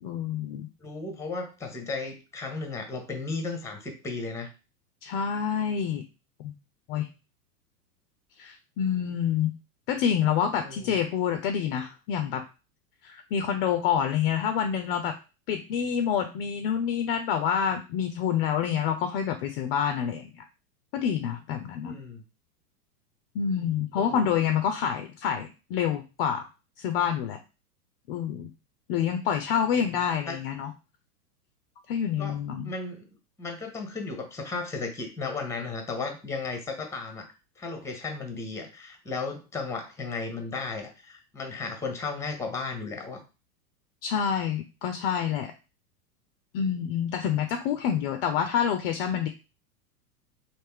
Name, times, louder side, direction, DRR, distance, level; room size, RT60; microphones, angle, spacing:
voice 1, 0.0-0.7 5.0-6.0 6.4-6.5 6.9-7.1 8.4-9.5 9.9-12.4 13.0-15.1 15.5-20.4 20.9-22.0 23.3-26.5 26.8-27.4 28.1-28.5 28.9-30.7 31.9-32.7 44.0-45.5 46.5-49.3, left 8 dB, 40° left, 7 dB, 0.4 m, -27 dB
voice 2, 0.8-4.5 10.6-11.0 21.8-22.2 24.0-24.3 29.7-29.9 30.3-30.4 32.2-32.4 32.6-33.1 33.4-43.2, left 4 dB, 5° left, 5 dB, 0.7 m, -35 dB
3.2 x 2.6 x 3.5 m, 0.31 s
hypercardioid pair, 110°, 47 cm